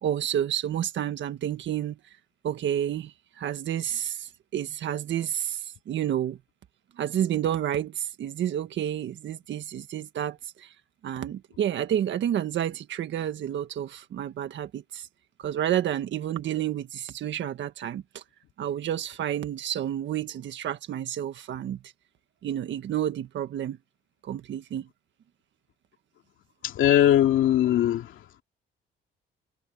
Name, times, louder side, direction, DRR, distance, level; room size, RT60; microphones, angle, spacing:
voice 1, 0.0-2.0 2.4-6.4 7.0-10.7 11.0-15.1 15.4-18.2 18.6-21.8 22.4-23.8 24.2-24.9, right 10 dB, 70° right, 1.6 m, -30 dB
voice 2, 26.6-28.2, left 11 dB, 80° left, 2.6 m, -20 dB
cardioid pair, 90°, 20 cm